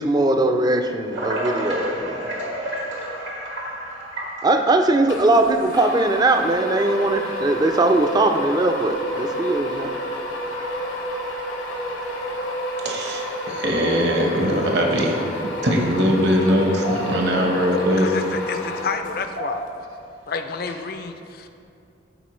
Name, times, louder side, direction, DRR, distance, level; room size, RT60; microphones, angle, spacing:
voice 1, 0.0-2.3 4.4-9.9, right 2 dB, 20° right, 6 dB, 0.3 m, -20 dB
sound 1, 1.1-5.0 5.8-5.9 6.9-7.0 7.7-8.0 8.5-8.6 9.0-9.2 10.6-10.7 13.4-13.5 14.3-14.9 16.3-16.4 16.7-17.4 17.7-17.8 19.1-19.9 20.6-20.9, right 1 dB, 85° right, 1.5 m, -31 dB
sound 2, 5.1-19.4, equal, 85° left, 1.1 m, -30 dB
voice 2, 12.8-15.3 15.6-18.1, equal, 60° right, 0 dB, 1.0 m, -21 dB
voice 3, 17.7-19.7 20.3-21.5, left 4 dB, 50° left, 7 dB, 0.4 m, -29 dB
13.0 x 4.4 x 3.1 m, 2.6 s
head